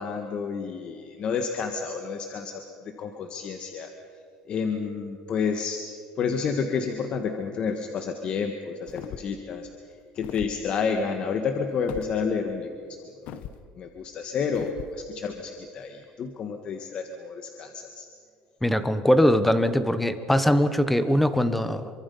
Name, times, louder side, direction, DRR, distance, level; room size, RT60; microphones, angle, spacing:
voice 1, 0.0-2.6 3.0-3.9 4.5-5.9 6.2-9.7 10.1-12.7 13.8-18.1, left 5 dB, 45° left, 5 dB, 1.6 m, -30 dB
sound 1, 8.9-9.4 10.2-10.6 11.9-12.1 13.3-13.6 14.5-15.0, left 10 dB, 60° left, 1.2 m, -38 dB
voice 2, 18.6-21.9, left 1 dB, 5° left, 12 dB, 1.2 m, -21 dB
27.5 x 24.0 x 5.6 m, 2.3 s
cardioid pair, 130°, 3 cm